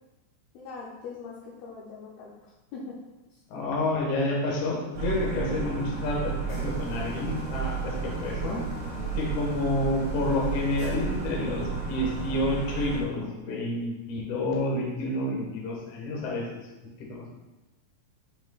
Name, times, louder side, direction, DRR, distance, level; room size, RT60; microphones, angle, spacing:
voice 1, 0.5-3.0 3.3-3.4 9.0-9.4, left 4 dB, 80° left, -5 dB, 2.3 m, -42 dB
voice 2, 3.5-8.6 9.2-16.7 17.1-17.3, left 2 dB, 65° left, -3 dB, 2.1 m, -29 dB
sound 1, 4.9-13.0, right 5 dB, 70° right, 3.1 m, -32 dB
8.8 x 4.9 x 2.3 m, 1.1 s
omnidirectional pair, 5.2 m